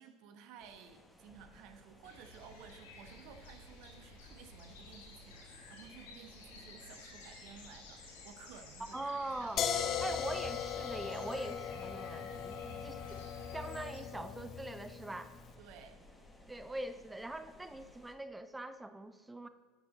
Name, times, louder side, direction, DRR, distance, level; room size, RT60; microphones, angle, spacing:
voice 1, 0.0-10.2 12.6-13.0 15.6-16.0, right 7 dB, 55° right, 8 dB, 1.1 m, -56 dB
sound 1, 0.6-18.2, left 1 dB, 5° left, 1.5 m, -60 dB
sound 2, 2.0-14.0, left 2 dB, 65° left, 3.1 m, -54 dB
voice 2, 8.9-9.6 10.0-13.0 13.5-15.3 16.5-19.5, right 1 dB, 10° right, 11 dB, 0.8 m, -42 dB
sound 3, 9.6-15.4, left 8 dB, 40° left, 0.8 m, -39 dB
11.5 x 9.6 x 3.9 m, 1.5 s
figure-of-eight pair, 70°, 0 cm